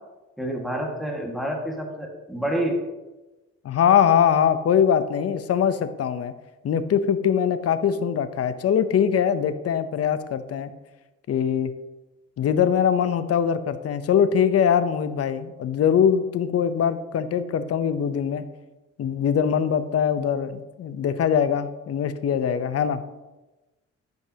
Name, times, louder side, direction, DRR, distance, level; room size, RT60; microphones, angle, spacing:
voice 1, 0.4-2.8, right 1 dB, ahead, 0 dB, 1.7 m, -28 dB
voice 2, 3.6-6.3 6.6-10.7 11.3-11.7 12.4-18.4 19.0-23.0, left 8 dB, 50° left, 11 dB, 0.7 m, -22 dB
14.0 x 5.3 x 2.8 m, 1.1 s
cardioid pair, 90°, 30 cm